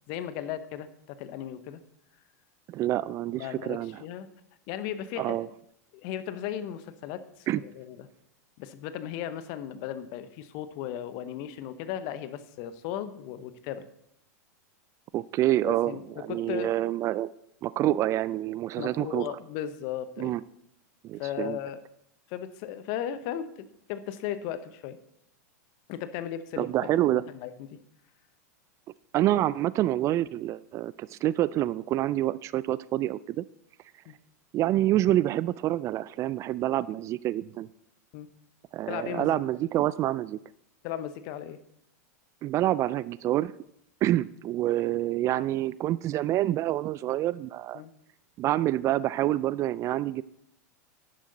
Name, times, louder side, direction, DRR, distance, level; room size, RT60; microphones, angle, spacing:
voice 1, 0.1-1.8 3.3-4.3 4.7-5.4 5.9-8.1 8.6-13.8 15.6-16.7 18.8-20.3 21.2-21.8 22.3-25.0 25.9-27.8 34.1-34.2 38.1-38.3 38.9-39.4 40.8-41.6 47.7-47.9, left 10 dB, 50° left, 12 dB, 1.0 m, -36 dB
voice 2, 2.7-4.0 5.2-5.5 7.5-7.6 15.1-17.3 17.6-19.3 20.2-20.4 21.0-21.6 26.6-27.2 29.1-33.4 34.5-37.7 38.7-40.4 42.4-43.5 44.0-47.8 48.4-50.2, right 14 dB, 35° right, 19 dB, 0.3 m, -27 dB
11.0 x 10.5 x 4.0 m, 0.75 s
hypercardioid pair, 100°, 9 cm